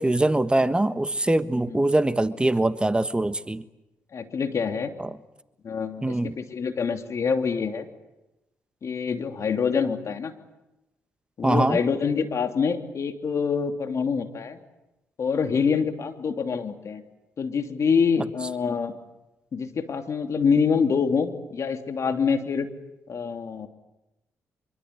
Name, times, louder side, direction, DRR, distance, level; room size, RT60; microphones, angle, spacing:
voice 1, 0.0-3.6 5.0-5.1 6.0-6.4 11.4-11.8, right 2 dB, 15° right, 12 dB, 1.4 m, -23 dB
voice 2, 4.1-4.9 5.6-7.9 8.8-10.3 11.4-14.6 15.2-17.0 17.4-18.9 19.5-22.7 23.1-23.7, left 6 dB, 55° left, 6 dB, 2.9 m, -26 dB
25.5 x 24.5 x 8.4 m, 0.98 s
supercardioid pair, 55°, 6 cm